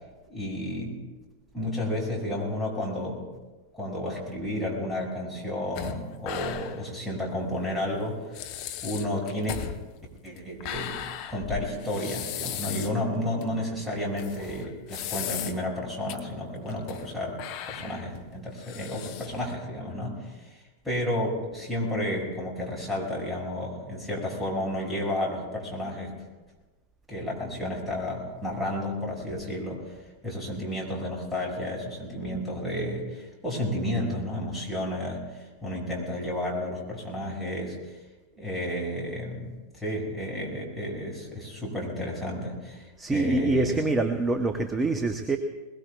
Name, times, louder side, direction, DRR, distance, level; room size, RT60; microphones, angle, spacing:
voice 1, 0.3-1.0 1.5-3.2 3.7-8.2 8.8-9.7 10.2-11.0 11.3-20.6 20.8-26.1 27.1-29.9 30.2-35.2 35.6-37.8 38.4-39.5 39.7-43.9, left 1 dB, ahead, -3 dB, 6.1 m, -32 dB
sound 1, 5.8-6.9 7.2-7.3 8.0-8.1 8.3-13.0 13.4-13.5 14.2-15.7 16.1-16.2 16.7-17.1 17.4-19.5, left 10 dB, 45° left, 0.9 m, -37 dB
voice 2, 43.0-45.4, right 2 dB, 15° right, 7 dB, 0.9 m, -25 dB
21.5 x 21.0 x 2.4 m, 1.2 s
figure-of-eight pair, 90°, 0 cm